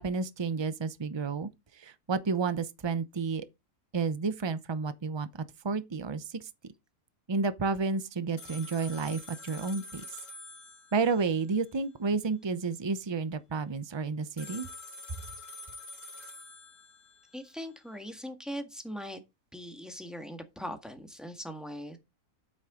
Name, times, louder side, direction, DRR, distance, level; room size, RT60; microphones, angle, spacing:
voice 1, 0.0-1.5 1.8-3.5 3.9-6.5 7.3-10.0 10.9-14.7, right 4 dB, 40° right, 0.4 m, -31 dB
sound 1, 8.4-11.3 14.4-17.2, left 2 dB, 50° left, 2.5 m, -46 dB
voice 2, 17.3-19.2 19.5-22.0, equal, ahead, 1.6 m, -40 dB
8.8 x 8.1 x 3.8 m
omnidirectional pair, 1.7 m